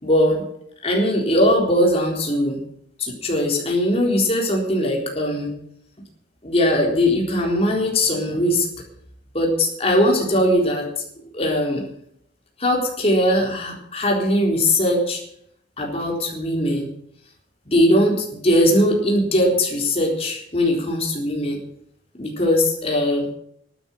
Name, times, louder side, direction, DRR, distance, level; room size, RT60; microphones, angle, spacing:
voice 1, 0.0-0.4 0.8-2.6 3.0-5.5 6.4-8.7 9.3-10.9 11.3-11.8 12.6-15.2 15.8-16.9 17.7-21.6 22.2-23.3, left 1 dB, 35° left, 0 dB, 4.0 m, -20 dB
12.0 x 10.0 x 8.9 m, 0.70 s
head